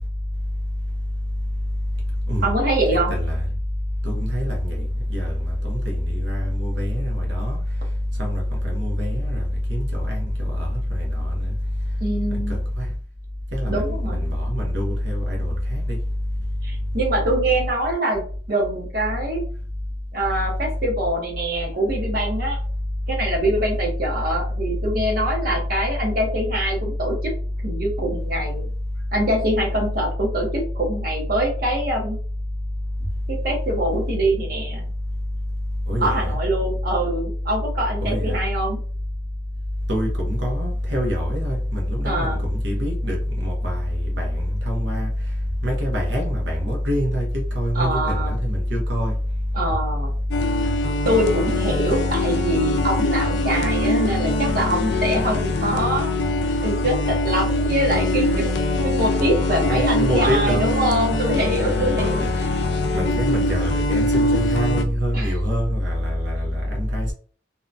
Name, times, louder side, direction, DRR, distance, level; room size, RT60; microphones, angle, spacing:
voice 1, 2.4-3.1 12.0-12.6 13.7-14.2 16.6-18.2 18.5-19.4 20.1-22.6 23.1-27.3 27.6-28.7 29.1-32.2 33.3-34.9 36.0-38.8 42.0-42.4 47.7-48.4 49.5-50.1 51.0-56.1 56.6-58.5 58.8-62.2 65.1-65.4, right 1 dB, 55° right, 0.8 m, -24 dB
voice 2, 4.0-4.8 5.1-5.3 5.6-7.6 8.2-9.4 9.7-10.2 10.6-11.4 12.8-12.9 13.5-15.8 35.9-36.3 38.0-38.4 39.9-45.1 45.6-47.3 47.5-49.1 59.7-60.8 61.4-62.1 62.9-67.1, equal, 85° right, 0.8 m, -24 dB
sound 1, 50.3-64.8, left 2 dB, 70° left, 0.4 m, -24 dB
2.7 x 2.1 x 2.5 m
head